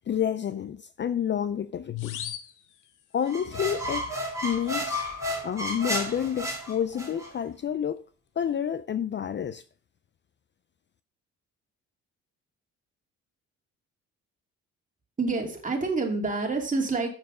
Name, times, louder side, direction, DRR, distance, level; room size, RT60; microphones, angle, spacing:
voice 1, 0.1-2.3 3.1-4.1 4.4-5.1 5.4-8.0 8.4-9.6, left 9 dB, 40° left, 0.5 m, -29 dB
sound 1, 2.0-3.5, left 9 dB, 85° left, 1.1 m, -41 dB
sound 2, 3.2-7.3, equal, 10° right, 3.2 m, -32 dB
voice 2, 15.2-17.1, right 3 dB, 25° right, 2.6 m, -27 dB
7.2 x 6.4 x 5.0 m
cardioid pair, 90°, 30 cm